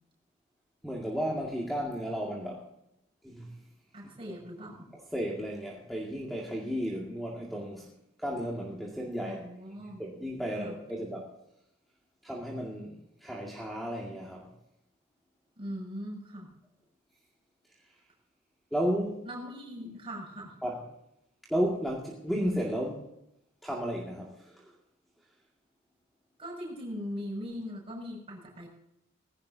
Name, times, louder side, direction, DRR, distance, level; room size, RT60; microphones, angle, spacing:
voice 1, 0.8-2.6 3.2-3.5 5.1-7.9 8.2-9.4 10.0-11.3 12.2-14.5 18.7-19.2 20.6-20.8 21.5-23.0 23.6-24.7, equal, ahead, -3 dB, 2.1 m, -33 dB
voice 2, 3.9-4.9 9.2-10.0 10.6-10.8 15.5-16.5 19.2-20.5 26.4-28.7, equal, 25° right, -3 dB, 6.5 m, -40 dB
19.0 x 16.5 x 2.8 m, 0.81 s
head